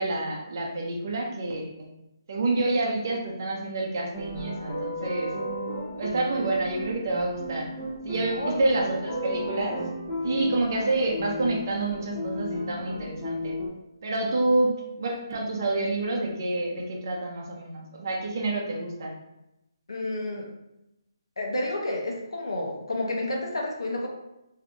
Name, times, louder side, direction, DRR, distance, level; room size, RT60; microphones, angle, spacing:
voice 1, 0.0-1.9 2.3-5.3 6.0-7.7 8.0-9.8 10.2-13.6 14.0-19.1, right 2 dB, 45° right, -1 dB, 0.6 m, -28 dB
sound 1, 4.1-13.7, equal, 15° left, 0.7 m, -34 dB
voice 2, 5.6-6.1 8.3-8.5 19.9-20.5 21.4-24.1, left 1 dB, 90° left, 0 dB, 0.8 m, -30 dB
3.7 x 2.7 x 2.4 m, 0.90 s
hypercardioid pair, 165°, 2 cm